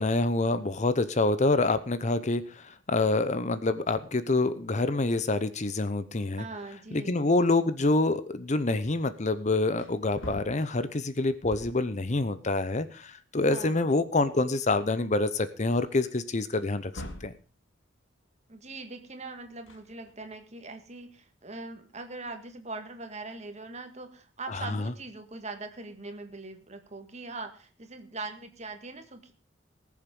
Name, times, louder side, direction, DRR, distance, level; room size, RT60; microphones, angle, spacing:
voice 1, 0.0-6.4 6.9-17.3 24.5-24.8, left 2 dB, 40° left, 13 dB, 0.8 m, -27 dB
voice 2, 6.3-7.2 13.4-14.0 18.5-29.3, right 3 dB, 35° right, 7 dB, 1.9 m, -41 dB
Wood, 9.8-12.0 13.1-13.2 13.5-14.7 15.2-15.3 16.5-17.4 19.5-20.4, equal, 85° left, 2.3 m, -45 dB
19.5 x 7.3 x 5.3 m, 0.37 s
head